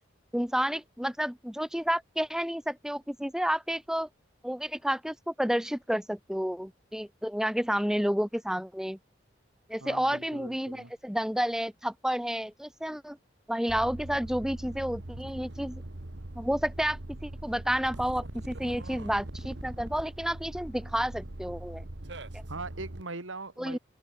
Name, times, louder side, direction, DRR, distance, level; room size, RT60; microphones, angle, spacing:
voice 1, 0.3-4.1 4.4-9.0 9.7-13.2 13.5-15.8 16.3-21.8 22.3-22.4 23.6-23.8, equal, 5° right, 1.2 m, -30 dB
voice 2, 9.8-10.9 22.5-23.8, right 3 dB, 85° right, 2.7 m, -40 dB
sound 1, 13.7-23.0, right 1 dB, 65° right, 1.6 m, -41 dB
open air
head